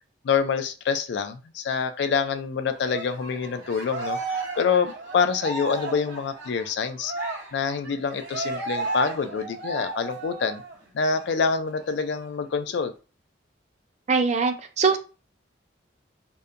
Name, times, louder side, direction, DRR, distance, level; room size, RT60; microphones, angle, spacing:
voice 1, 0.2-7.1 7.5-10.6 10.9-12.9, left 5 dB, 65° left, 9 dB, 0.3 m, -26 dB
Cheering, 2.8-10.8 11.1-11.3 11.7-12.7, right 3 dB, 75° right, 0.8 m, -34 dB
voice 2, 14.1-15.0, right 5 dB, 35° right, 7 dB, 0.3 m, -22 dB
2.7 x 2.1 x 2.4 m, 0.33 s
head